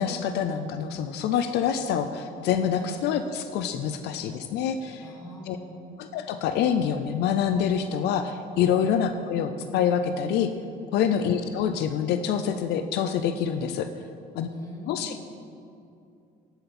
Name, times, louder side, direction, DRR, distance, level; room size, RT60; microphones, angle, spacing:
voice 1, 0.0-5.0 5.5-5.6 6.0-10.5 10.9-13.9 14.4-14.5 14.9-15.2, left 8 dB, 80° left, 9 dB, 0.6 m, -26 dB
voice 2, 5.0-6.0 8.7-9.0 11.0-11.3 14.5-15.2, left 1 dB, 20° left, -2 dB, 2.3 m, -44 dB
13.5 x 8.0 x 4.3 m, 2.5 s
cardioid pair, 110°, 17 cm